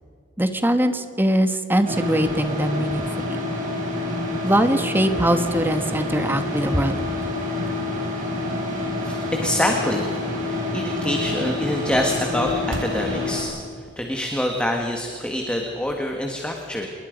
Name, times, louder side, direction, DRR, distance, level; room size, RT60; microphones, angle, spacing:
voice 1, 0.4-3.4 4.4-7.0, right 1 dB, 10° right, 8 dB, 1.4 m, -22 dB
sound 1, 1.8-13.4, left 2 dB, 40° right, 6.2 m, -27 dB
sound 2, 2.2-3.5 4.0-4.1 5.6-6.1 6.6-9.2 9.7-9.8 10.2-10.3 10.6-10.7 10.9-14.7 14.9-15.2 15.5-16.1, right 1 dB, 75° right, 2.2 m, -42 dB
voice 2, 9.0-13.5 13.8-16.9, left 1 dB, 5° left, 1 dB, 1.8 m, -26 dB
27.5 x 22.0 x 5.3 m, 2.3 s
head